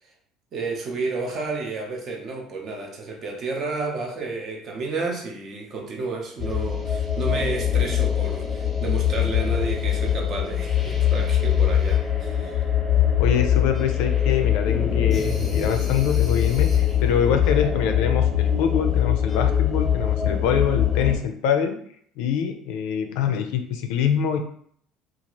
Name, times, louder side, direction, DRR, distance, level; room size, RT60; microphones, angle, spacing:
voice 1, 0.5-12.6, right 3 dB, 35° right, 1 dB, 0.6 m, -31 dB
sound 1, 6.4-21.2, left 9 dB, 10° left, 0.8 m, -22 dB
voice 2, 13.2-21.8 22.2-24.4, left 8 dB, 80° left, 6 dB, 0.4 m, -24 dB
2.8 x 2.4 x 3.0 m, 0.63 s
cardioid pair, 165°, 0 cm